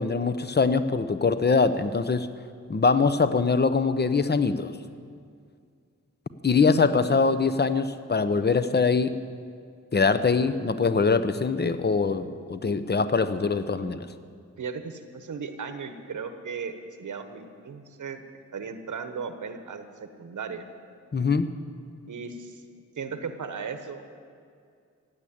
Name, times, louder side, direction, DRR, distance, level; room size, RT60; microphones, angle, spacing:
voice 1, 0.0-2.3 2.7-4.7 6.4-9.1 9.9-14.1 21.1-21.5, left 4 dB, 35° left, 11 dB, 0.8 m, -23 dB
voice 2, 6.9-7.3 14.6-18.2 18.5-20.7 22.1-22.6 23.0-24.2, right 5 dB, 85° right, 8 dB, 1.2 m, -36 dB
16.0 x 8.6 x 8.7 m, 2.3 s
cardioid pair, 70°, 30 cm